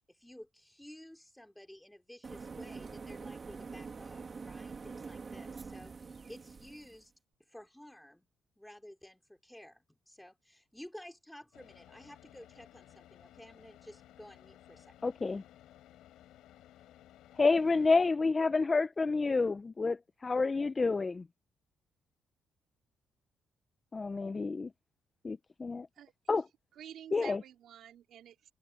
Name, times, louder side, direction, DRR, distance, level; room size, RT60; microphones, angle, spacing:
voice 1, 0.1-7.1 7.5-8.3 8.6-14.9, left 1 dB, 5° left, 4.7 m, -53 dB
sound 1, 2.2-7.0, right 4 dB, 35° right, 2.2 m, -45 dB
Car / Idling, 11.5-18.1, left 13 dB, 85° left, 7.3 m, -58 dB
voice 2, 15.0-15.4 17.4-21.2 23.9-24.7 25.2-25.9 26.3-26.4 27.1-27.4, left 3 dB, 30° left, 0.5 m, -29 dB
voice 3, 26.7-28.5, right 10 dB, 75° right, 3.1 m, -50 dB
cardioid pair, 90°, 0 cm